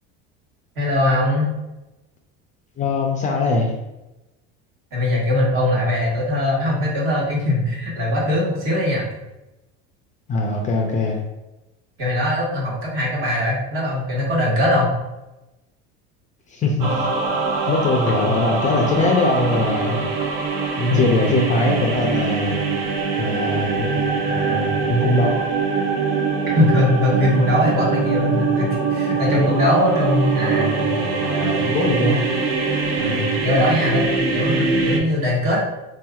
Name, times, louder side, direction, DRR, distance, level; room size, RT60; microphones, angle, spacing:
voice 1, 0.7-1.5 4.9-9.1 12.0-14.9 20.9-21.0 24.2-24.8 26.5-31.6 33.0-35.7, left 1 dB, 45° right, -3 dB, 1.3 m, -21 dB
voice 2, 2.8-3.7 10.3-11.2 16.5-16.9 17.7-20.0 20.8-22.6 23.2-24.0 24.9-25.4 29.4-29.7 31.6-32.2, left 2 dB, 25° left, 0 dB, 0.4 m, -21 dB
sound 1, 16.8-35.0, right 4 dB, 80° right, 0.8 m, -23 dB
3.8 x 2.8 x 2.3 m, 0.97 s
cardioid pair, 130°, 29 cm